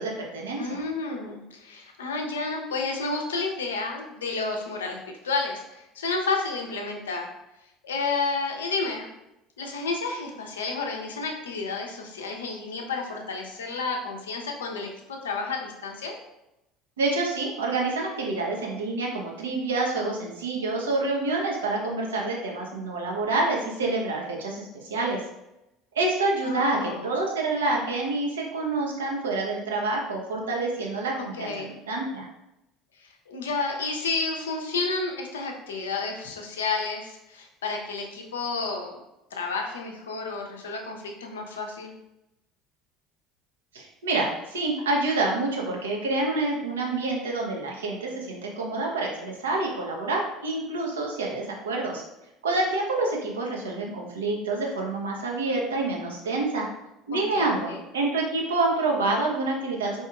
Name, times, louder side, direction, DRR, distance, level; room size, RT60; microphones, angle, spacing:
voice 1, 0.0-0.8 17.0-25.2 26.0-32.3 43.7-52.0 52.4-56.7 57.1-60.0, right 2 dB, 75° right, -1 dB, 0.7 m, -27 dB
voice 2, 0.6-7.3 7.8-9.1 9.6-16.2 26.4-27.1 31.2-31.7 33.0-38.9 39.3-41.9 57.1-57.8, left 4 dB, 75° left, 2 dB, 0.5 m, -31 dB
4.4 x 2.9 x 2.3 m, 0.91 s
figure-of-eight pair, 65°, 0 cm